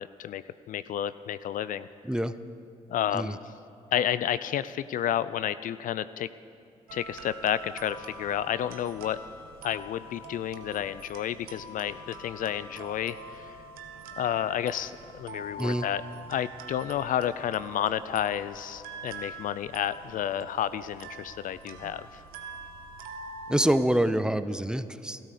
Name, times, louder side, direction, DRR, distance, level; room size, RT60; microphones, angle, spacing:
voice 1, 0.0-1.9 2.9-3.4 3.9-6.3 6.9-9.2 9.6-13.6 14.2-16.0 16.3-22.2, left 10 dB, 65° left, 15 dB, 0.5 m, -31 dB
sound 1, 6.9-23.8, right 2 dB, 80° right, 1.1 m, -44 dB
voice 2, 23.5-25.2, right 1 dB, 5° right, 12 dB, 0.8 m, -26 dB
16.0 x 13.0 x 6.7 m, 2.5 s
hypercardioid pair, 45°, 15 cm